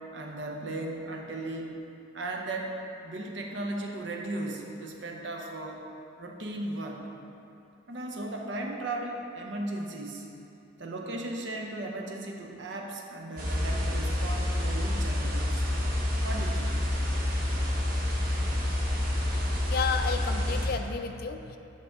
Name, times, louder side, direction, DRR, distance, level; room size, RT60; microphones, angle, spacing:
voice 1, 0.1-1.8 2.1-2.8 3.0-5.8 6.2-7.0 7.9-10.3 10.8-15.7 16.2-16.8, right 2 dB, 65° right, 1 dB, 0.8 m, -36 dB
sound 1, 13.4-20.7, left 1 dB, 45° right, 1.1 m, -28 dB
voice 2, 19.7-21.6, left 5 dB, 50° left, 7 dB, 0.4 m, -31 dB
7.5 x 5.7 x 3.7 m, 2.8 s
head